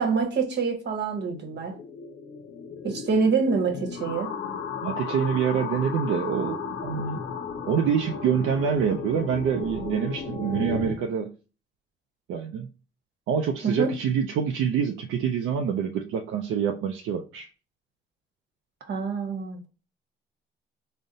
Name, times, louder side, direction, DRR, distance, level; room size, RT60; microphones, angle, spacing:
voice 1, 0.0-1.8 2.8-4.3 13.6-13.9 18.9-19.7, right 5 dB, 60° right, 1.0 m, -26 dB
sound 1, 1.3-10.9, left 6 dB, 75° left, 0.6 m, -35 dB
voice 2, 4.8-7.2 7.7-11.3 12.3-12.7 13.3-17.5, right 7 dB, 80° right, 0.4 m, -26 dB
3.8 x 2.1 x 3.8 m
cardioid pair, 90°, 20 cm